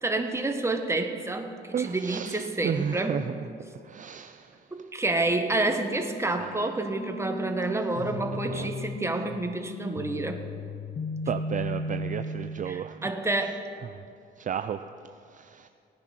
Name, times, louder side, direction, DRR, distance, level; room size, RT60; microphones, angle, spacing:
voice 1, 0.0-3.1 4.7-10.4 12.7-13.6, right 2 dB, 15° right, 5 dB, 1.4 m, -29 dB
voice 2, 1.7-3.5 3.8-4.9 6.3-6.8 7.7-8.7 11.3-13.1 13.4-13.6 13.8-14.1 14.4-14.8 15.1-15.7, right 8 dB, 40° right, 9 dB, 0.5 m, -34 dB
sound 1, 7.0-12.9, left 2 dB, 45° left, 1.0 m, -36 dB
18.0 x 9.9 x 5.9 m, 2.5 s
cardioid pair, 90°, 20 cm